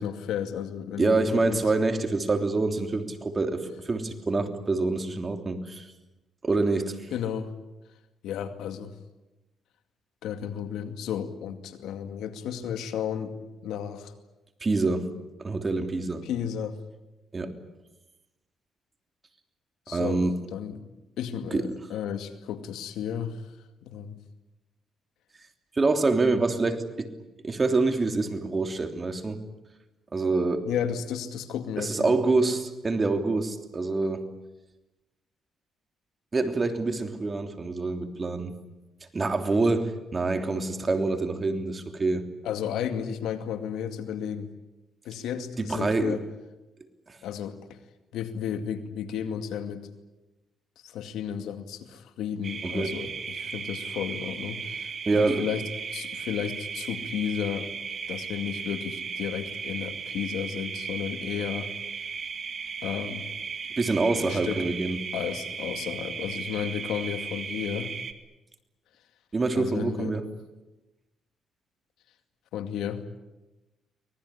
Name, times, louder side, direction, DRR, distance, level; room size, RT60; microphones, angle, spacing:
voice 1, 0.0-1.6 7.1-7.5 8.2-8.9 10.2-14.1 16.2-16.8 19.9-20.2 20.5-20.8 21.2-23.5 23.8-24.2 30.7-32.2 42.4-44.5 45.0-46.2 47.2-47.8 48.1-49.8 50.8-55.6 55.9-57.7 58.1-61.7 62.8-63.2 64.2-64.6 65.1-67.9 69.5-70.2 72.5-73.0, left 9 dB, 85° left, 8 dB, 2.3 m, -33 dB
voice 2, 1.0-5.9 6.4-7.0 14.6-15.1 15.4-16.3 17.3-17.5 19.9-20.4 21.5-21.7 25.7-27.1 27.4-29.4 30.1-30.7 31.8-34.3 36.3-38.5 39.1-42.2 45.6-46.1 47.1-47.2 52.6-52.9 55.0-55.5 63.8-65.0 69.3-70.2, right 3 dB, 30° right, 6 dB, 3.1 m, -26 dB
sound 1, 52.4-68.1, right 6 dB, 50° right, 2.2 m, -36 dB
25.0 x 20.0 x 9.9 m, 1.0 s
cardioid pair, 90°, 0 cm